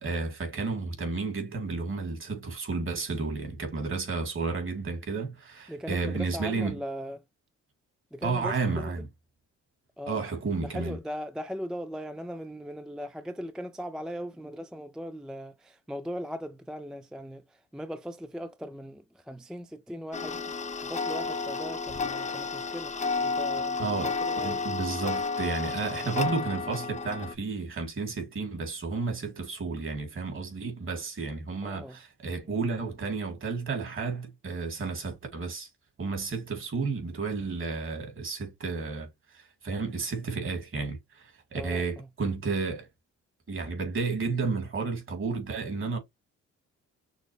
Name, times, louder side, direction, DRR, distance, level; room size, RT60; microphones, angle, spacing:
voice 1, 0.0-6.8 8.2-9.1 10.1-11.0 23.8-24.1 24.4-35.7 36.0-42.9 43.5-46.0, right 4 dB, 45° right, 2.2 m, -32 dB
voice 2, 5.7-7.2 8.1-8.9 10.0-10.3 10.6-20.5 20.8-24.6 26.0-26.3 31.6-32.0 41.6-42.1, equal, ahead, 0.4 m, -39 dB
Tick-tock, 20.1-27.3, left 4 dB, 25° left, 0.8 m, -31 dB
6.2 x 2.1 x 3.2 m
cardioid pair, 90°, 30 cm